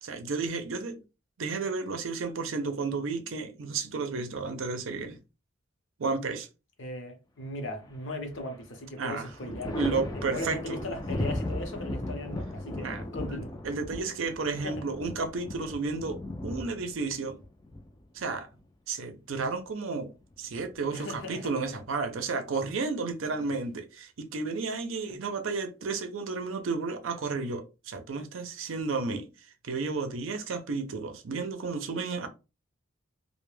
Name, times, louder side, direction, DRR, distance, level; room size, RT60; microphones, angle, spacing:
voice 1, 0.0-1.0 1.4-5.2 6.0-6.5 9.0-10.8 12.7-13.0 13.3-17.4 18.1-18.5 18.9-20.1 20.4-29.3 29.6-32.3, right 4 dB, 75° right, 0.5 m, -32 dB
voice 2, 6.8-9.9 10.3-13.5 14.6-14.8 20.9-21.5 23.4-23.5 25.1-25.2, left 1 dB, 65° left, 0.7 m, -38 dB
Thunder, 7.8-8.6 9.0-18.6 20.1-20.9, left 1 dB, 20° left, 0.3 m, -37 dB
2.1 x 2.1 x 3.1 m
head